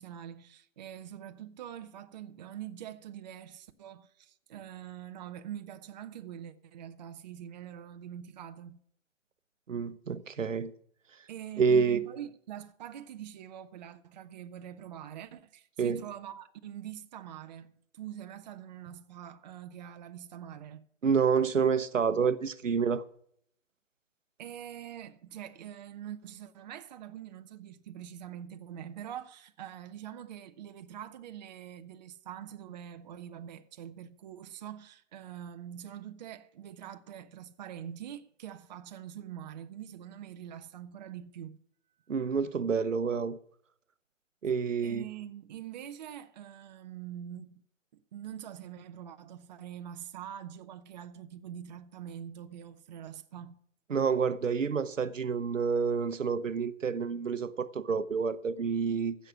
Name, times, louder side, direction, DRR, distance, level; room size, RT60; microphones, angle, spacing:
voice 1, 0.0-8.8 11.3-20.8 24.4-41.6 44.8-47.6 47.9-53.6, right 10 dB, 35° right, 0.8 m, -44 dB
voice 2, 9.7-10.7 11.6-12.0 15.8-16.0 21.0-23.0 42.1-43.4 44.4-45.1 53.9-59.2, right 6 dB, 80° right, 1.0 m, -28 dB
15.5 x 6.7 x 6.0 m
figure-of-eight pair, 140°, 37 cm